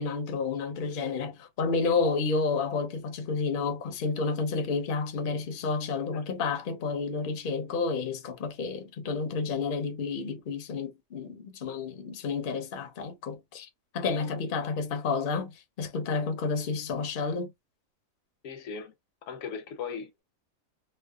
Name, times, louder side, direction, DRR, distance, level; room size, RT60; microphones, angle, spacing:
voice 1, 0.0-13.7 13.9-15.5 15.8-17.5, left 4 dB, 50° left, 0.7 m, -30 dB
voice 2, 18.4-18.9 19.3-20.2, left 6 dB, 75° left, 1.1 m, -38 dB
3.1 x 2.1 x 2.2 m
omnidirectional pair, 1.4 m